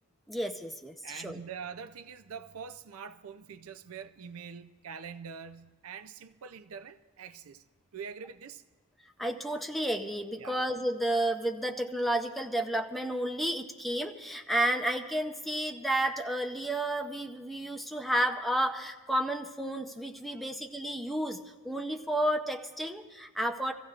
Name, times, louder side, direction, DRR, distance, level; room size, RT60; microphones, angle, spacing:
voice 1, 0.3-1.4 9.2-23.7, right 1 dB, ahead, 0.6 m, -31 dB
voice 2, 1.0-7.6 7.9-8.6 10.4-10.6 20.3-20.5, right 6 dB, 90° right, 0.5 m, -44 dB
25.0 x 15.0 x 2.5 m
head